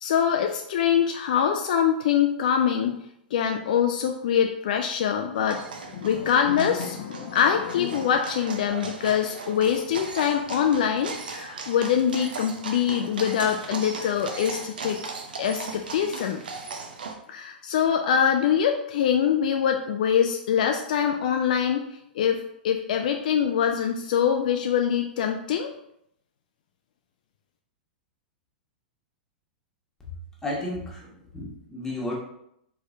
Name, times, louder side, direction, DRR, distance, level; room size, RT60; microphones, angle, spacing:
voice 1, 0.0-3.0 3.3-5.6 5.9-15.0 15.4-16.4 17.3-21.8 22.2-25.7, left 8 dB, 55° left, 4 dB, 0.4 m, -24 dB
sound 1, 5.4-17.1, right 4 dB, 70° right, 0.6 m, -38 dB
voice 2, 30.4-32.1, left 1 dB, 10° left, -4 dB, 1.3 m, -33 dB
4.4 x 3.2 x 2.6 m, 0.73 s
figure-of-eight pair, 100°, 5 cm